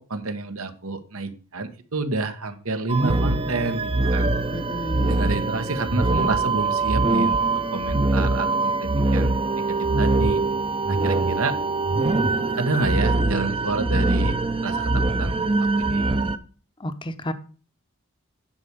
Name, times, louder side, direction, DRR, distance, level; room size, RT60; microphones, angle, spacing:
voice 1, 0.0-4.3 5.1-10.4 10.9-11.6 12.6-14.4 14.6-15.5 15.7-16.1, right 3 dB, 85° right, 8 dB, 1.3 m, -29 dB
sound 1, 2.9-16.4, right 3 dB, 25° right, 0.6 m, -23 dB
voice 2, 4.5-5.2 16.8-17.3, equal, 25° left, 11 dB, 0.7 m, -32 dB
10.0 x 4.8 x 6.8 m, 0.38 s
head